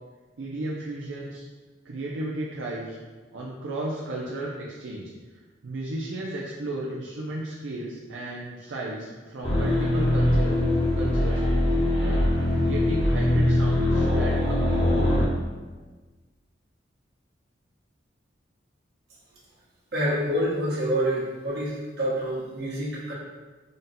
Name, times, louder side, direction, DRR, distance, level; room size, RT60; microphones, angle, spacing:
voice 1, 0.4-1.5 1.8-3.0 3.3-10.7 10.9-15.3, right 1 dB, 80° right, -4 dB, 0.5 m, -34 dB
sound 1, 9.4-15.2, left 1 dB, 30° left, 0.9 m, -22 dB
voice 2, 19.9-23.1, equal, 55° right, -7 dB, 1.1 m, -27 dB
3.9 x 2.2 x 4.0 m, 1.3 s
head